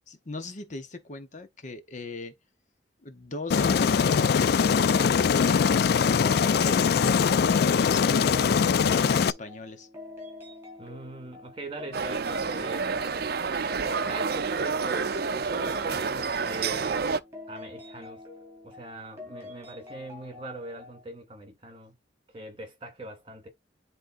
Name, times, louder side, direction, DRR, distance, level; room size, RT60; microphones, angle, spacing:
voice 1, 0.1-2.3 3.0-7.0 7.5-8.5 8.9-9.9, left 2 dB, 40° left, 0.8 m, -39 dB
Aircraft, 3.5-9.3, left 6 dB, 60° left, 0.3 m, -22 dB
sound 1, 6.3-21.0, left 2 dB, 15° right, 4.8 m, -46 dB
voice 2, 10.8-12.9 14.0-17.1 17.5-18.2 18.6-21.9 22.3-23.5, right 1 dB, 30° right, 2.6 m, -41 dB
sound 2, 11.9-17.2, right 5 dB, 55° right, 0.6 m, -29 dB
10.5 x 3.8 x 2.5 m
head